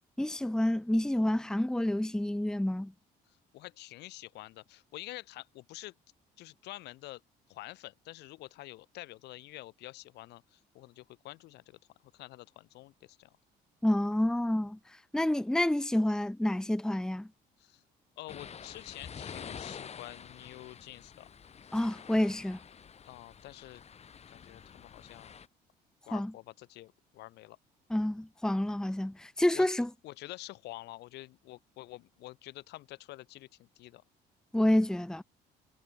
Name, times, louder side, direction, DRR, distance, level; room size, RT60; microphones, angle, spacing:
voice 1, 0.2-2.9 13.8-14.8 15.1-17.3 21.7-22.6 26.1-26.3 27.9-29.9 34.5-35.2, left 1 dB, 5° left, 1.2 m, -28 dB
voice 2, 3.5-5.9 6.4-7.2 7.5-11.8 12.1-13.3 17.6-17.8 18.2-21.3 23.1-23.8 24.3-25.4 26.1-27.6 29.5-29.7 30.0-34.0, left 17 dB, 80° left, 3.6 m, -48 dB
sound 1, 18.3-25.5, left 7 dB, 40° left, 5.3 m, -48 dB
cardioid pair, 110°, 17 cm